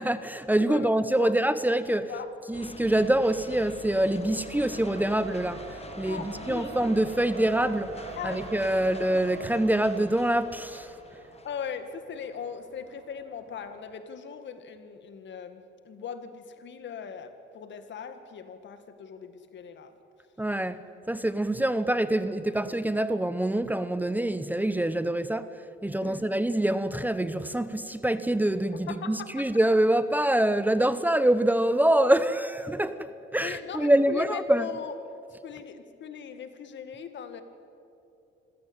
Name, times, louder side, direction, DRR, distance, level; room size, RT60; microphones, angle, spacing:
voice 1, 0.0-2.1 2.5-6.2 6.5-10.9 20.4-20.8 21.1-25.5 25.8-34.7, right 1 dB, 10° right, 0.9 m, -25 dB
voice 2, 0.6-1.4 2.1-2.3 6.1-6.7 8.2-8.4 11.4-20.0 26.0-26.3 28.7-29.1 29.4-29.5 29.8-29.9 33.4-35.0 35.4-37.4, left 7 dB, 65° left, 2.0 m, -39 dB
Race car auto racing, 1.4-14.0, right 8 dB, 70° right, 1.5 m, -46 dB
sound 1, 2.5-11.7, left 4 dB, 30° left, 1.3 m, -45 dB
26.0 x 15.5 x 8.8 m
cardioid pair, 90°, 20 cm